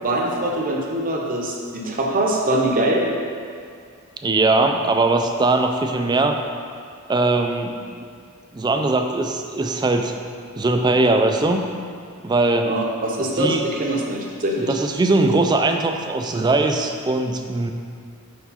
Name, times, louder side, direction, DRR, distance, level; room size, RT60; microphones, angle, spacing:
voice 1, 0.0-3.1 12.7-14.7, right 1 dB, 40° right, -1 dB, 0.7 m, -23 dB
voice 2, 4.2-6.4 7.1-8.1 8.5-10.1 10.6-11.6 12.2-12.7 13.4-13.6 14.7-17.7, right 2 dB, 20° right, 5 dB, 0.3 m, -20 dB
4.6 x 4.6 x 5.6 m, 2.2 s
head